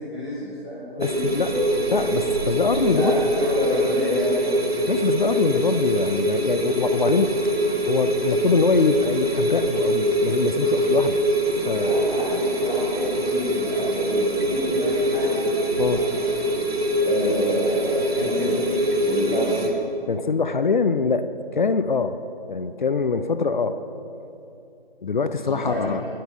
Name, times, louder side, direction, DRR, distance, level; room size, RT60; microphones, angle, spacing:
voice 1, 0.0-2.0 2.8-4.4 11.8-16.3 17.0-18.6 19.0-19.7 25.4-26.1, left 1 dB, 5° left, -12 dB, 0.5 m, -29 dB
voice 2, 1.0-1.5 1.9-3.3 4.9-7.3 7.8-11.2 11.6-12.0 15.8-16.0 20.1-21.3 21.5-22.2 22.5-23.8 25.0-26.0, left 4 dB, 55° left, 11 dB, 0.5 m, -23 dB
sound 1, 1.0-19.7, right 1 dB, 80° right, 1.6 m, -24 dB
12.0 x 9.5 x 5.4 m, 2.8 s
figure-of-eight pair, 150°, 30 cm